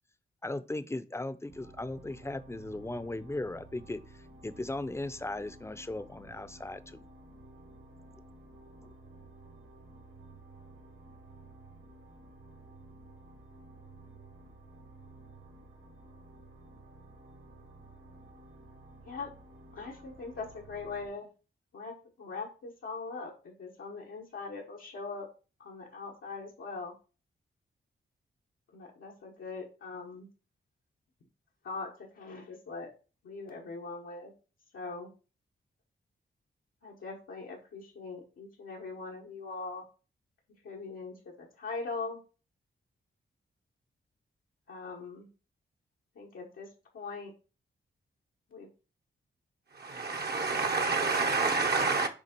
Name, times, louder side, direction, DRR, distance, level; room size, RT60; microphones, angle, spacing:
voice 1, 0.4-7.0, left 2 dB, 15° left, 0.6 m, -37 dB
sound 1, 1.5-21.1, right 2 dB, 75° right, 1.5 m, -53 dB
voice 2, 19.7-21.3 21.7-25.3 25.6-26.9 28.7-30.3 31.6-32.9 33.2-34.3 34.7-35.1 36.8-39.9 40.6-42.2 44.7-45.3 46.2-46.7 46.9-47.3 48.5-48.7 50.5-50.9, left 4 dB, 85° left, 1.2 m, -41 dB
voice 3, 49.7-52.1, right 4 dB, 50° right, 0.9 m, -28 dB
6.1 x 3.5 x 4.4 m
cardioid pair, 55°, 21 cm